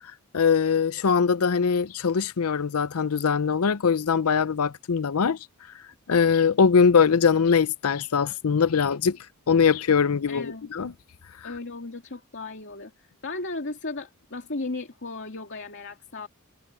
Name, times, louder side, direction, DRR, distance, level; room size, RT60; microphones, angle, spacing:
voice 1, 0.3-5.4 6.1-9.2 9.5-10.9, left 6 dB, 90° left, 0.6 m, -22 dB
voice 2, 10.3-10.7 11.4-12.9 13.2-16.3, left 3 dB, 55° left, 2.5 m, -35 dB
head